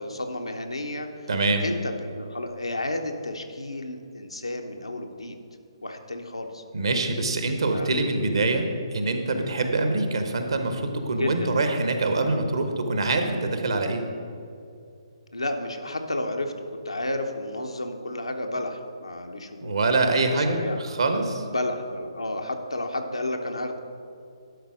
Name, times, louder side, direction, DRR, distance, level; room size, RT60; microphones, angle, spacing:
voice 1, 0.0-1.3 1.6-5.4 5.8-6.6 7.7-7.9 11.1-11.5 15.3-19.7 20.2-20.8 21.4-23.8, left 1 dB, 80° left, 4 dB, 0.9 m, -32 dB
voice 2, 1.3-1.6 6.7-14.1 19.6-21.4, right 2 dB, 65° right, 6 dB, 1.0 m, -25 dB
11.5 x 4.0 x 6.2 m, 2.5 s
figure-of-eight pair, 135°, 3 cm